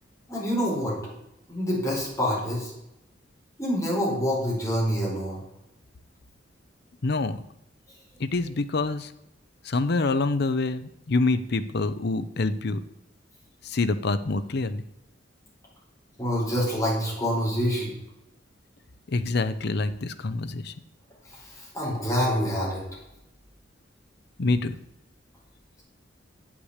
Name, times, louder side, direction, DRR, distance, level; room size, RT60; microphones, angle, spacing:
voice 1, 0.3-1.0 1.5-2.7 3.6-5.4 16.2-17.9 21.3-22.8, equal, 15° left, -5 dB, 4.5 m, -26 dB
voice 2, 7.0-7.4 8.2-9.1 9.6-12.8 13.6-14.8 19.1-20.7 24.4-24.8, left 3 dB, 60° left, 12 dB, 0.7 m, -26 dB
8.2 x 6.0 x 8.1 m, 0.85 s
head